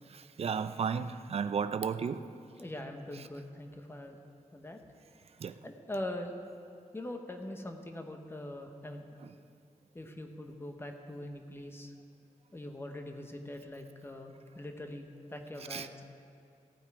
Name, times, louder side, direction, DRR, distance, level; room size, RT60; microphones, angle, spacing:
voice 1, 0.1-2.2 5.4-5.6 15.7-15.9, right 6 dB, 50° right, 11 dB, 0.4 m, -33 dB
voice 2, 2.6-4.2 4.5-4.8 5.6-6.3 6.9-9.0 9.9-11.9 12.5-16.0, left 1 dB, 15° left, 4 dB, 0.9 m, -42 dB
15.5 x 8.8 x 4.8 m, 2.4 s
wide cardioid pair, 150°, 14 cm